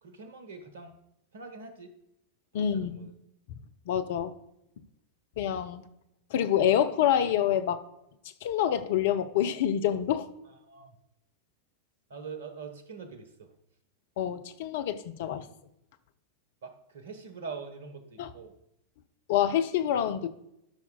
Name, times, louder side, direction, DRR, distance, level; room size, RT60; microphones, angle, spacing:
voice 1, 0.0-1.0 1.3-1.9 2.5-3.1 10.4-11.0 12.1-13.5 16.6-18.6, right 5 dB, 60° right, 1.1 m, -44 dB
voice 2, 2.5-3.1 3.9-4.3 5.4-5.9 6.3-7.8 8.4-10.3 14.2-15.5 18.2-18.3 19.3-20.3, left 10 dB, 55° left, 0.5 m, -27 dB
12.0 x 5.8 x 2.3 m
figure-of-eight pair, 90°, 0 cm